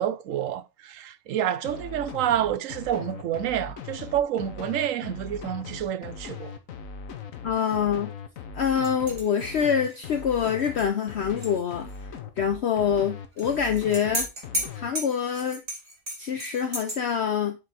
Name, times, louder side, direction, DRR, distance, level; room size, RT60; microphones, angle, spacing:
voice 1, 0.0-6.6, right 10 dB, 75° right, 1.0 m, -28 dB
sound 1, 1.6-14.9, left 6 dB, 75° left, 1.3 m, -39 dB
voice 2, 7.4-8.1 8.6-11.9 12.4-14.3 14.7-15.6 16.2-17.6, left 7 dB, 60° left, 0.9 m, -25 dB
sound 2, 8.8-11.6 11.9-12.0 13.4-17.0, equal, 25° right, 2.4 m, -35 dB
7.7 x 4.0 x 4.1 m
omnidirectional pair, 1.4 m